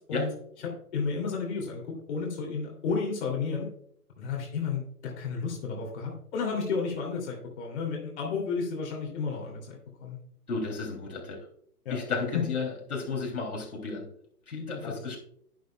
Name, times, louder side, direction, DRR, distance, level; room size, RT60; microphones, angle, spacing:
voice 1, 0.6-3.7 4.2-10.2 11.8-12.0 12.3-12.4 14.8-15.0, left 5 dB, 45° left, -1 dB, 2.9 m, -32 dB
voice 2, 10.5-11.5 11.9-14.1 14.5-15.2, left 4 dB, 65° left, 0 dB, 3.1 m, -33 dB
11.0 x 9.5 x 2.3 m, 0.66 s
figure-of-eight pair, 125°, 46 cm